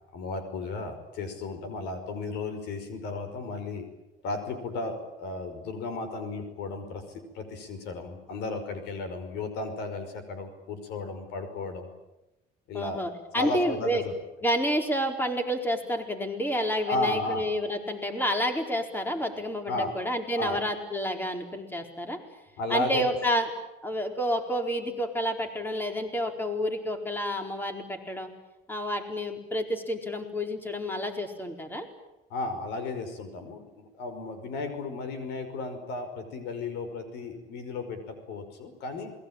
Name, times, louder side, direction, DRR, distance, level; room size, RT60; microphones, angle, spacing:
voice 1, 0.1-3.9 4.2-11.9 12.7-13.0 13.4-14.1 16.9-17.5 19.7-20.0 20.4-20.6 22.6-23.1 32.3-39.1, left 3 dB, 90° left, 9 dB, 5.5 m, -34 dB
voice 2, 12.7-14.1 14.4-22.2 22.7-23.5 23.8-28.3 28.7-31.9, equal, 10° left, 4 dB, 4.4 m, -29 dB
28.0 x 21.0 x 9.0 m, 0.99 s
cardioid pair, 110°, 17 cm